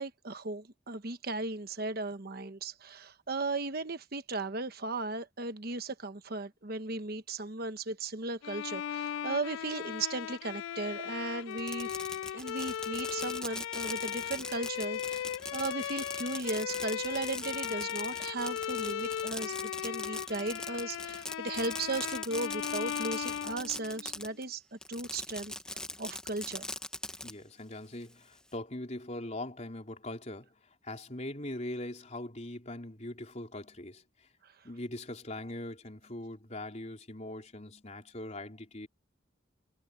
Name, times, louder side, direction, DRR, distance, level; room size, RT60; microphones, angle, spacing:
voice 1, 0.0-12.0 12.3-26.7 34.4-34.7, right 3 dB, 50° right, 1.2 m, -36 dB
Bowed string instrument, 8.4-24.3, left 9 dB, 80° left, 0.3 m, -37 dB
Fireworks, 11.5-24.4 24.8-27.3, left 1 dB, 5° left, 1.0 m, -41 dB
voice 2, 27.2-34.3 34.6-38.9, left 1 dB, 35° left, 4.1 m, -41 dB
head